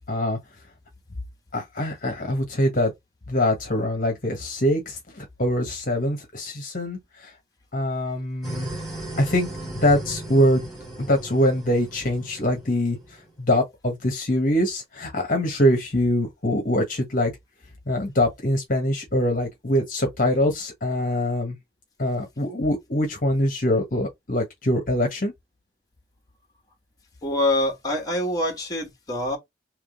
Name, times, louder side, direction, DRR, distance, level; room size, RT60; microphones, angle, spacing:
voice 1, 0.1-0.4 1.5-2.9 3.3-7.3 7.7-8.7 9.2-9.5 9.8-10.7 11.0-13.0 13.4-17.3 17.9-21.6 22.0-25.3, left 1 dB, 50° left, 1.2 m, -23 dB
sound 1, 8.4-13.3, right 1 dB, ahead, 2.1 m, -37 dB
voice 2, 27.2-29.4, left 1 dB, 20° left, 1.6 m, -25 dB
3.7 x 3.0 x 3.6 m
head